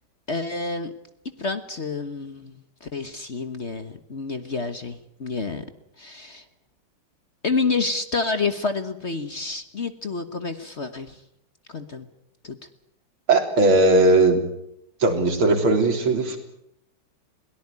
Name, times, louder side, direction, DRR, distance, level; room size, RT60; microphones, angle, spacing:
voice 1, 0.3-0.9 1.4-5.6 6.0-6.4 7.4-11.2 11.7-12.1 12.4-12.6, left 4 dB, 35° left, 10 dB, 1.3 m, -29 dB
voice 2, 13.3-14.4 15.0-16.4, right 2 dB, 85° right, 5 dB, 4.2 m, -18 dB
22.0 x 18.0 x 9.7 m, 0.78 s
omnidirectional pair, 2.3 m